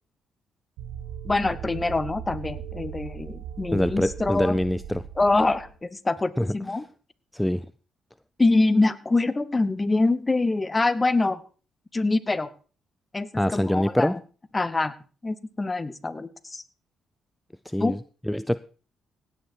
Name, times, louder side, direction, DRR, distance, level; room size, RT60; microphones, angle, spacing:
sound 1, 0.8-5.8, right 9 dB, 80° right, 1.4 m, -38 dB
voice 1, 1.2-4.6 5.2-6.8 8.4-11.4 11.9-12.5 13.1-14.1 14.5-14.9 15.2-16.6 17.8-17.9, left 2 dB, 25° left, 16 dB, 1.2 m, -24 dB
voice 2, 3.7-5.0 6.4-6.5 7.3-7.7 13.4-14.2 17.7-18.0 18.3-18.6, left 1 dB, 5° left, 16 dB, 0.5 m, -24 dB
17.0 x 9.4 x 4.6 m, 0.38 s
hypercardioid pair, 50°, 0 cm